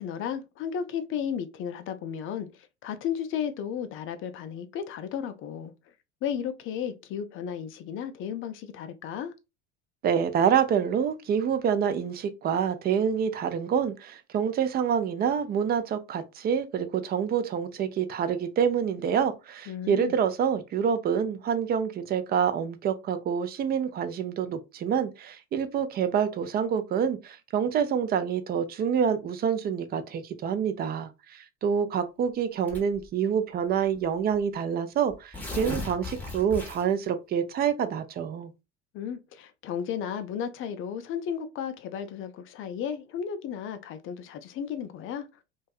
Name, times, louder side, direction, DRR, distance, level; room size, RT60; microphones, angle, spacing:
voice 1, 0.0-2.5 2.8-5.7 6.2-9.3 19.7-20.1 38.9-45.2, left 8 dB, 35° left, 0.4 m, -34 dB
voice 2, 10.0-31.1 31.6-38.5, right 7 dB, 30° right, 0.4 m, -27 dB
Tearing, 32.7-33.1 34.0-34.1 34.3-34.4 35.1-37.1, left 2 dB, 5° left, 0.8 m, -36 dB
2.6 x 2.2 x 2.3 m
hypercardioid pair, 85°, 35 cm